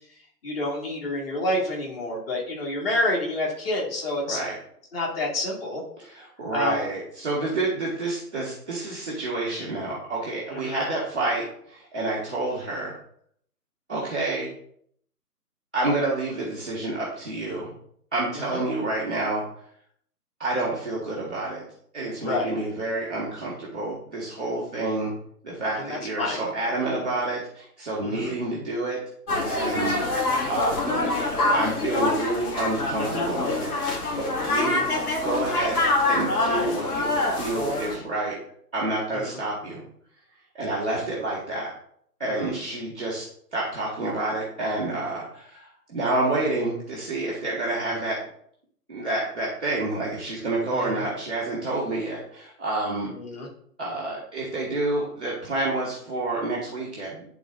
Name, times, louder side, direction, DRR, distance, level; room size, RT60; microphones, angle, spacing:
voice 1, 0.4-4.4 4.9-5.8 6.5-6.8 10.5-10.8 18.3-18.6 22.2-22.5 25.8-26.5 28.0-28.3 29.9-30.2 34.6-35.0 39.1-39.4 42.3-42.6 50.6-51.0 53.1-53.5, left 1 dB, 35° left, -2 dB, 2.4 m, -29 dB
voice 2, 4.2-4.6 6.0-13.0 13.9-14.5 15.7-17.7 18.1-19.4 20.4-21.6 21.9-25.1 25.4-29.0 29.4-31.1 31.5-33.7 34.1-34.8 35.2-35.8 36.1-37.1 37.4-38.4 38.7-39.8 40.5-41.7 42.2-43.3 43.5-48.2 48.9-53.1 53.8-57.2, right 2 dB, 5° right, -14 dB, 0.6 m, -28 dB
sound 1, 29.3-38.0, left 2 dB, 65° left, 2.3 m, -25 dB
10.5 x 3.8 x 3.8 m, 0.66 s
hypercardioid pair, 155°, 48 cm